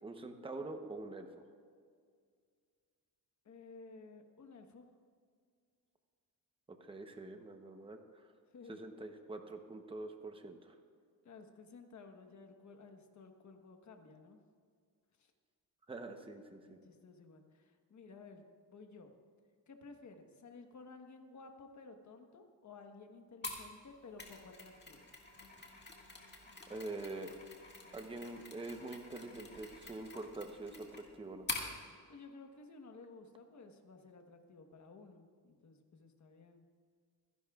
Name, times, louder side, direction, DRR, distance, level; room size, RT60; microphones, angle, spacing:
voice 1, 0.0-1.4 6.8-8.2 8.7-10.7 15.9-16.8 26.7-27.3 27.9-31.5, right 2 dB, 15° right, 5 dB, 0.9 m, -45 dB
voice 2, 3.4-4.9 8.5-8.8 11.2-14.4 15.2-15.3 16.7-18.4 18.7-19.1 19.7-25.1 32.1-36.6, left 4 dB, 45° left, 5 dB, 1.3 m, -55 dB
Mechanisms, 23.4-31.7, left 3 dB, 25° left, 1.8 m, -47 dB
26.5 x 11.0 x 2.4 m, 2.1 s
cardioid pair, 130°, 40 cm